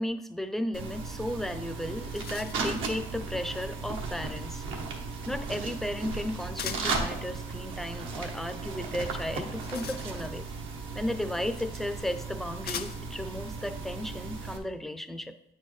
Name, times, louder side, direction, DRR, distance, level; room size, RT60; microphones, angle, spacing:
voice 1, 0.0-4.6 5.3-10.4 10.9-15.3, left 1 dB, ahead, 9 dB, 0.5 m, -34 dB
sound 1, 0.7-14.6, right 4 dB, 85° right, 1.1 m, -36 dB
sound 2, 1.9-2.8 6.6-7.0 9.3-10.5 11.6-11.7 12.6-13.2, left 8 dB, 55° left, 0.5 m, -40 dB
8.7 x 4.5 x 3.2 m, 0.82 s
cardioid pair, 90°, 20 cm